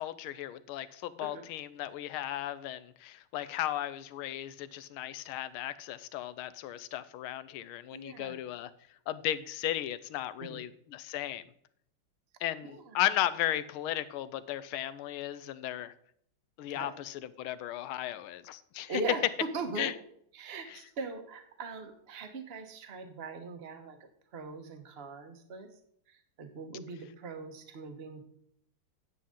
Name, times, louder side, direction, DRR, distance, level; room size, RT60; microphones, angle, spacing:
voice 1, 0.0-8.7 9.1-11.4 12.4-15.9 16.6-18.9 19.8-19.9, left 13 dB, 80° left, 15 dB, 1.5 m, -35 dB
voice 2, 7.9-8.4 10.4-10.6 12.6-13.0 16.7-17.0 18.9-19.2 19.5-19.9 20.3-25.7 26.1-28.2, right 3 dB, 40° right, 6 dB, 1.0 m, -41 dB
10.0 x 7.7 x 3.7 m, 0.68 s
omnidirectional pair, 2.3 m